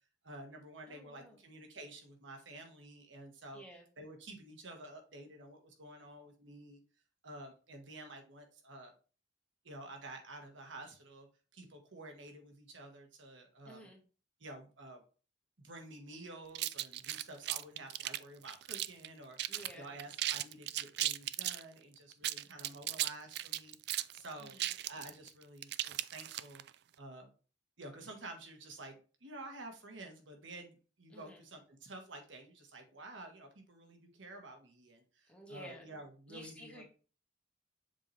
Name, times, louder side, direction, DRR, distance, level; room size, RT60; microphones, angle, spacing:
voice 1, 0.2-3.6 4.0-6.8 7.2-8.9 9.6-13.9 14.4-15.0 15.6-24.5 24.8-26.6 27.0-27.3 27.8-36.8, right 2 dB, 90° right, 3 dB, 1.6 m, -50 dB
voice 2, 0.9-1.4 3.5-3.9 13.7-14.0 19.5-19.9 24.4-24.7 31.1-31.4 35.3-35.9 36.3-36.8, equal, 5° left, -1 dB, 1.9 m, -52 dB
sound 1, 16.5-19.1 19.4-19.7 20.0-21.6 22.1-26.7, right 14 dB, 60° right, 0.3 m, -37 dB
7.2 x 4.1 x 3.3 m, 0.36 s
head